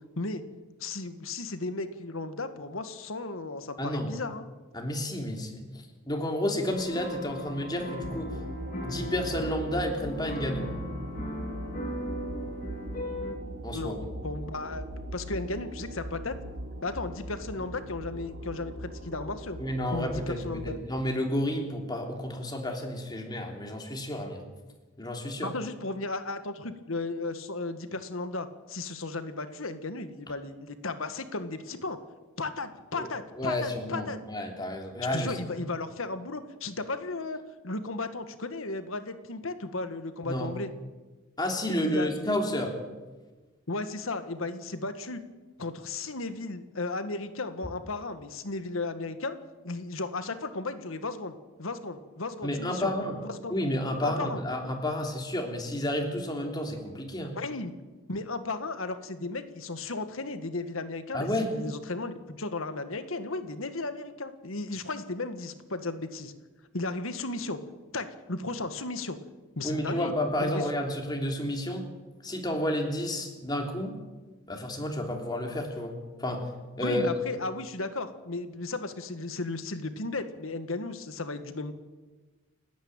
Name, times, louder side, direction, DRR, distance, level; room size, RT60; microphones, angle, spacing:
voice 1, 0.8-4.4 13.7-14.0 14.2-14.9 15.1-16.4 16.8-19.6 19.9-20.8 25.4-32.0 32.4-34.2 35.1-37.4 37.6-40.7 41.7-42.3 43.7-45.2 45.6-49.4 49.6-52.9 53.3-53.6 54.0-54.4 57.3-57.7 58.1-66.3 66.7-67.6 67.9-69.2 69.5-70.1 70.4-70.6 76.8-81.7, left 3 dB, 85° left, 10 dB, 1.7 m, -35 dB
voice 2, 3.8-4.1 4.7-8.4 8.8-10.7 13.6-13.9 19.6-24.4 25.0-25.5 32.9-33.1 33.4-35.4 40.2-40.5 41.4-42.8 52.4-53.2 53.5-57.4 61.1-61.5 69.6-71.9 72.2-74.0 74.5-75.9 76.2-76.5 76.8-77.1, left 1 dB, 20° left, 2 dB, 3.3 m, -31 dB
sound 1, 6.7-13.3, left 1 dB, 40° left, 2.9 m, -38 dB
sound 2, 8.0-20.8, right 1 dB, 70° right, 2.3 m, -40 dB
30.0 x 10.5 x 8.9 m, 1.2 s
head